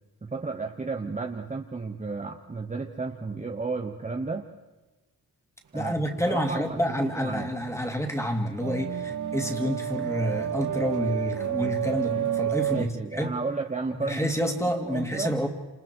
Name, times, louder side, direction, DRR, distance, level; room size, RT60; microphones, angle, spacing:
voice 1, 0.2-4.5 5.7-6.0 6.3-7.5 12.7-15.4, right 4 dB, 20° right, 3 dB, 1.1 m, -33 dB
voice 2, 5.7-12.9 13.1-13.4 14.0-15.5, equal, 5° left, 4 dB, 2.6 m, -28 dB
sound 1, 7.0-12.8, right 10 dB, 50° right, 1.8 m, -30 dB
30.0 x 28.0 x 4.6 m, 1.1 s
wide cardioid pair, 155°, 39 cm